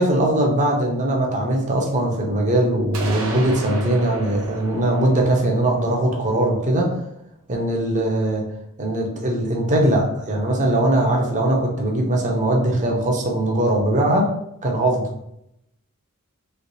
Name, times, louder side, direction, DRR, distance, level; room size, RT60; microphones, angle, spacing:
voice 1, 0.0-6.9 7.5-8.4 8.8-14.3 14.6-15.0, right 1 dB, 35° right, 0 dB, 0.7 m, -20 dB
sound 1, 2.9-6.7, right 2 dB, 80° right, 0.7 m, -34 dB
3.2 x 3.1 x 2.7 m, 0.79 s
head